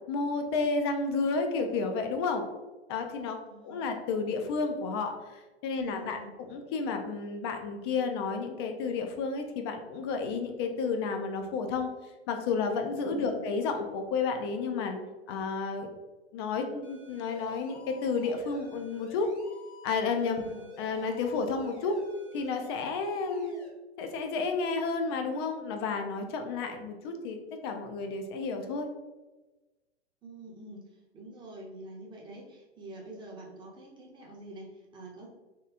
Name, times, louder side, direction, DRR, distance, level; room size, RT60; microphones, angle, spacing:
voice 1, 0.1-2.4 2.9-3.4 3.6-11.9 12.3-15.0 15.3-15.9 16.3-19.3 19.8-20.5 20.8-22.0 22.3-23.5 24.0-27.4 27.6-28.9, left 4 dB, 25° left, 5 dB, 0.4 m, -31 dB
voice 2, 3.5-3.9 5.8-6.3 13.1-13.4 20.4-20.7 30.2-35.3, right 1 dB, 15° right, -2 dB, 0.7 m, -47 dB
sound 1, 16.8-23.7, left 2 dB, 75° left, 1.3 m, -51 dB
3.1 x 2.9 x 3.4 m, 1.1 s
figure-of-eight pair, 100°, 34 cm